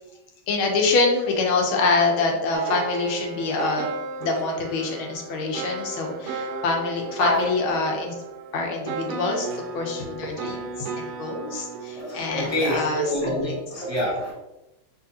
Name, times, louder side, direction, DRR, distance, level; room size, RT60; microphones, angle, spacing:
voice 1, 0.5-3.9 4.2-8.1 8.5-13.6, left 3 dB, 85° left, 0 dB, 1.7 m, -25 dB
sound 1, 2.5-13.6, right 4 dB, 75° right, 0.9 m, -35 dB
voice 2, 11.9-14.3, equal, 40° right, -7 dB, 0.5 m, -26 dB
5.1 x 3.2 x 2.8 m, 1.0 s
omnidirectional pair, 2.2 m